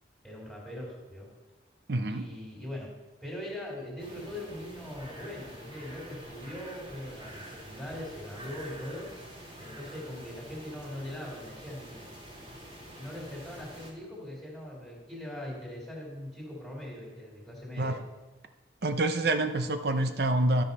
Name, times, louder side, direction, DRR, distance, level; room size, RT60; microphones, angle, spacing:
voice 1, 0.2-1.3 2.1-2.9 3.2-9.1 9.6-12.0 13.0-18.0, left 1 dB, 5° left, -5 dB, 3.1 m, -41 dB
voice 2, 1.9-2.2 17.8-18.0 18.8-20.6, right 2 dB, 55° right, 8 dB, 0.7 m, -27 dB
sound 1, 4.0-13.9, equal, 30° right, 2.6 m, -47 dB
13.0 x 6.3 x 5.4 m, 1.2 s
head